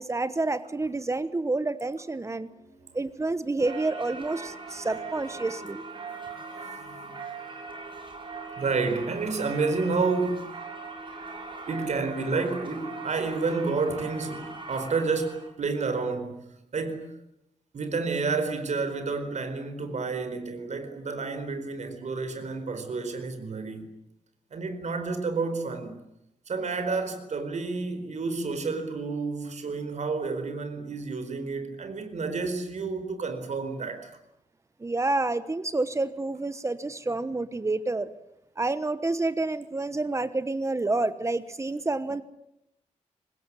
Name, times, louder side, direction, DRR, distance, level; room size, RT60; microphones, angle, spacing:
voice 1, 0.0-2.5 2.9-5.8 34.8-38.1 38.6-42.2, right 2 dB, 25° right, 1.1 m, -29 dB
voice 2, 2.5-3.0 4.7-4.9 6.7-7.2 8.5-10.5 11.7-17.1 17.7-23.9 24.5-26.0 26.5-34.1, right 4 dB, 65° right, 4.5 m, -30 dB
Singing / Church bell, 3.6-15.5, right 4 dB, 40° right, 7.0 m, -40 dB
25.0 x 20.5 x 9.8 m
wide cardioid pair, 165°, 13 cm